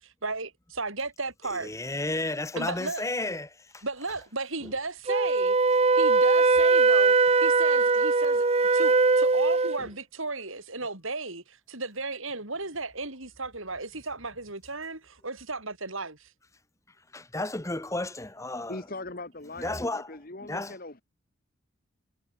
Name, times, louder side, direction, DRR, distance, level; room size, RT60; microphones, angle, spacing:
voice 1, 0.0-1.7 2.5-3.0 3.8-5.6 5.9-8.5 8.7-16.3, right 3 dB, 65° right, 6.5 m, -35 dB
voice 2, 1.5-3.8 4.6-4.7 9.8-9.9 17.1-18.9 19.6-20.8, left 2 dB, 15° left, 1.0 m, -33 dB
Wind instrument woodwind instrument, 5.1-9.8, right 3 dB, 30° right, 0.6 m, -21 dB
voice 3, 18.7-21.0, left 2 dB, 40° left, 1.8 m, -40 dB
head